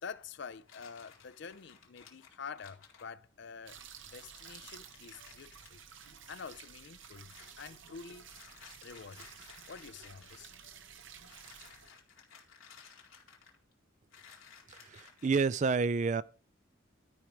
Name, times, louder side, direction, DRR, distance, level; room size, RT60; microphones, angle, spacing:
voice 1, 0.0-3.8 4.1-5.8 6.3-8.3 8.8-9.3 9.7-10.7, left 5 dB, 55° left, 0.5 m, -47 dB
sound 1, 0.7-3.1 4.0-4.1 4.3-7.5 8.2-10.4 11.2-13.7 14.1-15.5, left 6 dB, 85° left, 2.4 m, -57 dB
sound 2, 3.7-11.9, right 7 dB, 65° right, 1.0 m, -53 dB
voice 2, 14.7-16.2, right 4 dB, 35° right, 0.3 m, -29 dB
12.0 x 4.8 x 5.0 m
head